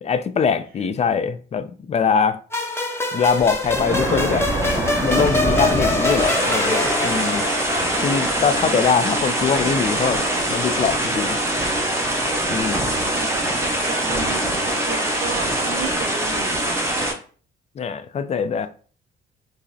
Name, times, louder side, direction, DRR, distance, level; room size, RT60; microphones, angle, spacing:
voice 1, 0.0-2.4 3.1-4.5 4.7-7.4 8.0-10.2 10.5-11.4 12.5-12.9 17.8-18.7, left 6 dB, 35° left, 0.4 m, -22 dB
sound 1, 2.5-9.2, left 2 dB, 10° left, 0.7 m, -25 dB
sound 2, 3.3-17.1, right 1 dB, 15° right, 0.9 m, -23 dB
sound 3, 5.1-8.6, left 3 dB, 55° left, 0.7 m, -36 dB
voice 2, 8.3-9.2 12.9-13.5 13.8-16.9, right 4 dB, 50° right, 0.6 m, -35 dB
5.0 x 2.0 x 2.7 m
cardioid pair, 90°, 20 cm